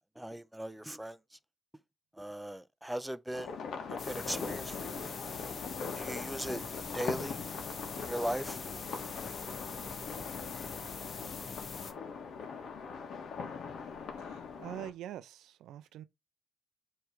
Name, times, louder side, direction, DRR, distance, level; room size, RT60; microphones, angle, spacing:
voice 1, 0.2-1.2 2.2-3.6 3.9-5.2 5.9-6.6 6.9-7.4 8.0-8.6, right 1 dB, 5° right, 0.5 m, -38 dB
sound 1, 3.3-14.9, left 5 dB, 70° left, 1.6 m, -41 dB
sound 2, 4.0-11.9, left 5 dB, 50° left, 1.1 m, -43 dB
voice 2, 14.2-16.0, right 11 dB, 85° right, 0.5 m, -44 dB
7.8 x 3.3 x 4.8 m
cardioid pair, 70°, 0 cm